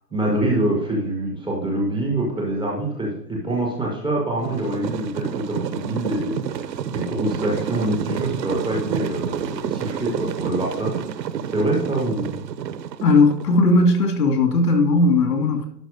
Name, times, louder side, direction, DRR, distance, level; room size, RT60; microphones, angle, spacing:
voice 1, 0.1-10.9 11.5-12.4, right 1 dB, ahead, -3 dB, 0.3 m, -25 dB
sound 1, 4.4-13.5, right 8 dB, 80° right, 0.8 m, -29 dB
voice 2, 13.0-15.6, left 2 dB, 70° left, 5 dB, 2.4 m, -17 dB
11.0 x 4.6 x 4.9 m, 0.72 s
hypercardioid pair, 125°, 50 cm